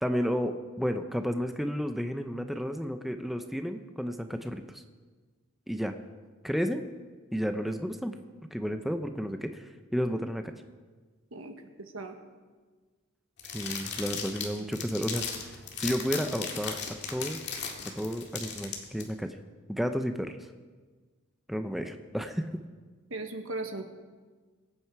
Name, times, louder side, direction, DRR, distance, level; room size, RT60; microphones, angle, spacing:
voice 1, 0.0-4.8 5.7-6.0 6.4-6.9 7.3-8.2 8.5-10.4 13.5-15.5 15.8-16.8 17.1-17.4 18.0-19.4 19.7-20.4 21.5-22.5, equal, ahead, 7 dB, 0.6 m, -32 dB
voice 2, 11.3-12.2 23.1-23.8, right 2 dB, 70° right, 6 dB, 1.4 m, -38 dB
sound 1, 13.4-19.0, left 6 dB, 55° left, 2.0 m, -37 dB
22.5 x 9.1 x 4.7 m, 1.4 s
head